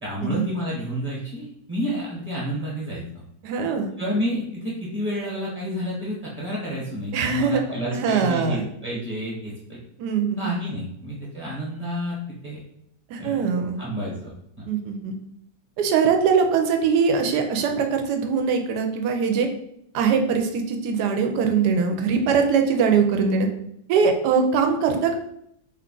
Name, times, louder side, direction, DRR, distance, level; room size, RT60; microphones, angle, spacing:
voice 1, 0.0-3.0 4.0-9.8 10.4-12.2 12.4-12.6 13.2-13.5 13.8-14.3, equal, 35° right, -7 dB, 1.0 m, -30 dB
voice 2, 3.4-3.9 7.1-7.6 7.9-8.6 10.0-10.5 13.1-13.8 14.7-15.2 15.8-19.5 19.9-23.5 23.9-25.2, right 5 dB, 80° right, 4 dB, 1.1 m, -22 dB
3.1 x 2.3 x 3.7 m, 0.73 s
omnidirectional pair, 1.8 m